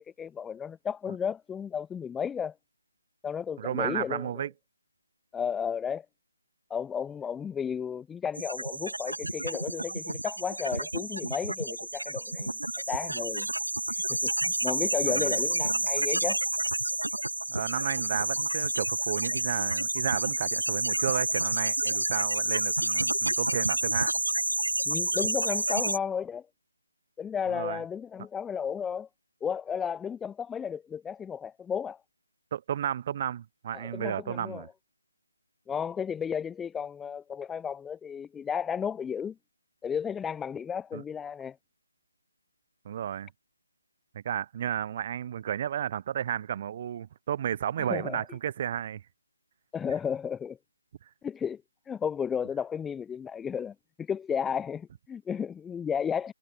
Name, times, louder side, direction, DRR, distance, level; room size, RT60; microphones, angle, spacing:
voice 1, 0.0-2.5 3.2-4.5 5.3-6.1 6.7-12.5 12.9-13.5 14.1-16.4 24.9-26.4 27.2-29.1 29.4-32.0 33.7-34.7 35.7-39.4 39.8-41.6 47.9-48.2 49.7-50.6 51.2-51.6 51.9-56.3, left 7 dB, 5° left, 0.5 m, -33 dB
voice 2, 3.6-4.5 15.0-15.4 17.5-24.1 27.5-27.8 32.5-34.7 40.9-41.0 42.8-43.3 44.1-49.0, right 9 dB, 30° right, 0.7 m, -33 dB
sound 1, 8.3-26.0, right 1 dB, 80° right, 1.8 m, -29 dB
figure-of-eight pair, 150°, 0 cm